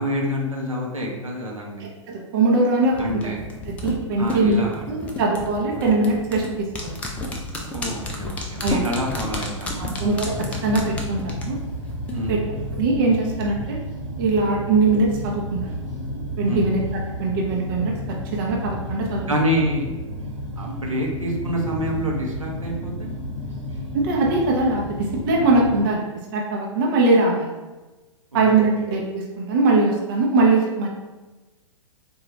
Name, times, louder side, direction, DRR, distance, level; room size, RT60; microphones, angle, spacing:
voice 1, 0.0-1.9 3.0-3.4 4.2-4.9 7.7-9.9 12.1-12.7 16.5-16.7 19.3-19.9 20.6-23.1 28.3-28.5, equal, 85° right, -1 dB, 0.8 m, -27 dB
voice 2, 1.8-3.3 3.8-7.0 8.6-8.8 9.8-11.6 12.3-12.4 12.8-13.8 14.2-15.8 16.4-16.8 17.2-18.0 18.3-19.3 23.9-26.0 26.3-27.5 28.3-30.9, right 3 dB, 40° right, -1 dB, 0.7 m, -21 dB
sound 1, 2.9-12.3 12.6-12.7, left 1 dB, 10° left, 0.3 m, -31 dB
sound 2, 9.9-25.8, equal, 65° right, 1.1 m, -32 dB
3.8 x 2.4 x 2.9 m, 1.2 s
figure-of-eight pair, 110°, 17 cm